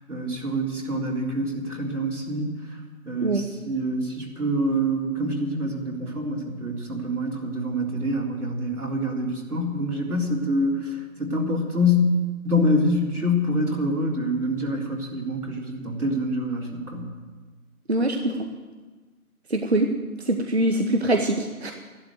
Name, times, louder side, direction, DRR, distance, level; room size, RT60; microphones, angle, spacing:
voice 1, 0.1-2.5 3.0-12.1 12.4-17.1, left 1 dB, 80° right, -1 dB, 3.9 m, -26 dB
voice 2, 17.9-18.4 19.5-19.9 20.3-21.7, right 1 dB, 45° right, 4 dB, 1.0 m, -23 dB
13.5 x 12.0 x 8.0 m, 1.3 s
figure-of-eight pair, 170°, 44 cm